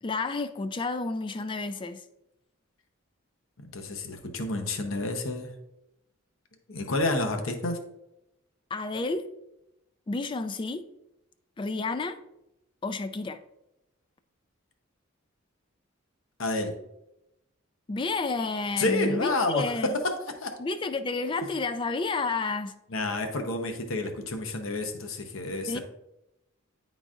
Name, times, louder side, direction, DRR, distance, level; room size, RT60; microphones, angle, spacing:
voice 1, 0.0-2.0 8.7-9.3 10.1-10.9 11.6-12.2 12.8-13.4 17.9-20.0 20.6-22.7 25.7-25.8, left 3 dB, 25° left, 0.3 m, -30 dB
voice 2, 3.6-5.5 6.7-7.8 16.4-16.7 18.8-19.6 20.0-20.1 20.4-20.5 21.4-21.5 22.9-25.8, left 2 dB, 75° left, 0.8 m, -29 dB
9.9 x 3.9 x 2.4 m
head